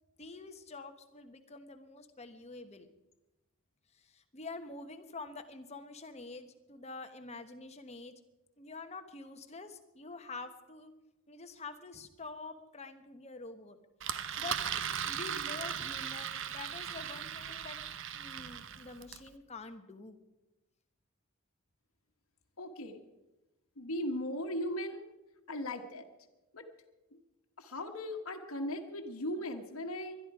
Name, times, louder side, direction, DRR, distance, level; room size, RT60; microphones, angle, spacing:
voice 1, 0.2-2.9 3.9-8.1 8.6-10.9 11.3-13.8 14.4-14.6 15.0-17.8 18.1-20.2, left 3 dB, 30° left, 7 dB, 1.2 m, -47 dB
Engine, 14.0-19.3, right 8 dB, 60° right, 0.8 m, -38 dB
voice 2, 22.6-23.0 23.8-25.1 25.5-26.1 26.5-26.7 27.1-27.2 27.6-30.2, left 1 dB, 80° left, 2 dB, 1.3 m, -38 dB
21.0 x 12.0 x 4.8 m, 1.0 s
head